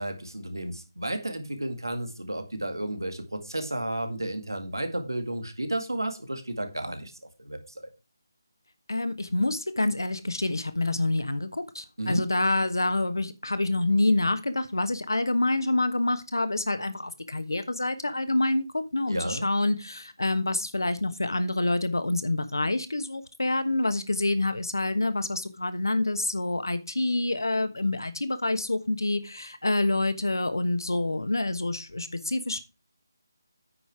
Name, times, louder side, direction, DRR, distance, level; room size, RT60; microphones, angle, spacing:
voice 1, 0.0-7.1 7.4-7.9 12.0-12.2 19.1-19.5, right 1 dB, 80° right, 2.0 m, -32 dB
voice 2, 8.9-32.6, left 2 dB, 75° left, 1.2 m, -27 dB
9.3 x 5.7 x 4.7 m
figure-of-eight pair, 155°, 2 cm